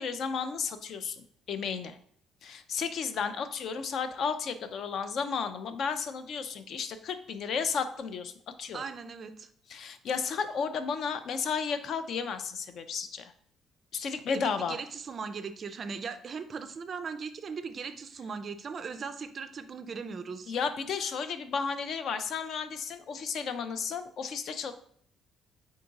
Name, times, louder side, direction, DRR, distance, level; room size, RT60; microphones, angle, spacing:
voice 1, 0.0-2.0 2.4-8.3 8.6-8.8 9.7-13.3 13.9-14.8 20.5-24.7, left 6 dB, 45° left, 10 dB, 0.4 m, -33 dB
voice 2, 8.7-9.5 14.3-20.5, right 5 dB, 30° right, 10 dB, 0.3 m, -39 dB
3.7 x 3.5 x 3.9 m, 0.62 s
cardioid pair, 160°, 0 cm